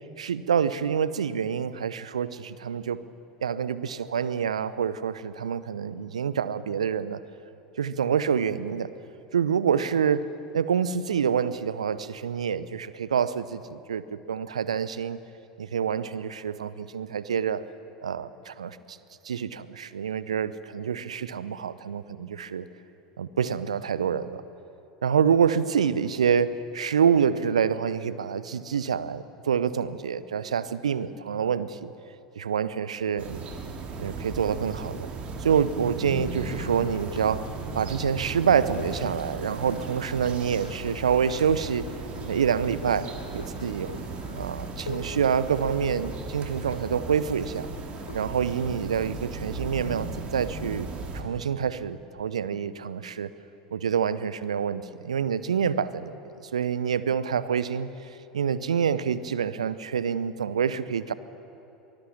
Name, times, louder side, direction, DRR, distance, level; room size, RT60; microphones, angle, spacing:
voice 1, 0.2-3.0 3.4-7.2 7.8-8.9 9.3-10.3 10.5-15.2 15.6-17.6 18.0-19.0 19.2-22.6 23.2-24.4 25.0-31.9 32.4-33.4 34.0-35.1 35.4-37.5 37.7-41.9 42.3-43.9 44.3-47.7 48.1-50.9 51.1-53.3 53.7-56.2 56.5-57.9 58.3-61.1, right 7 dB, 75° right, 16 dB, 0.7 m, -27 dB
sound 1, 33.2-51.2, right 4 dB, 35° right, 3.1 m, -36 dB
sound 2, 36.3-48.4, left 4 dB, 80° left, 1.0 m, -44 dB
24.0 x 19.5 x 7.3 m, 2.9 s
figure-of-eight pair, 75°, 3 cm